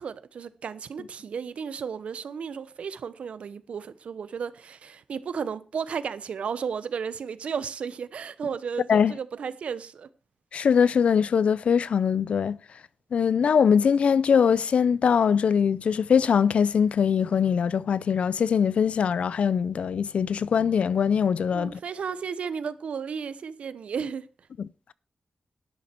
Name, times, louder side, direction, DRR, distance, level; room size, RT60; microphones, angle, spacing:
voice 1, 0.0-10.1 21.5-24.3, right 6 dB, 90° right, 1.0 m, -34 dB
voice 2, 10.5-12.6 13.1-21.8 24.6-24.9, left 7 dB, 80° left, 0.6 m, -22 dB
12.5 x 10.5 x 4.5 m
wide cardioid pair, 120°, 2 cm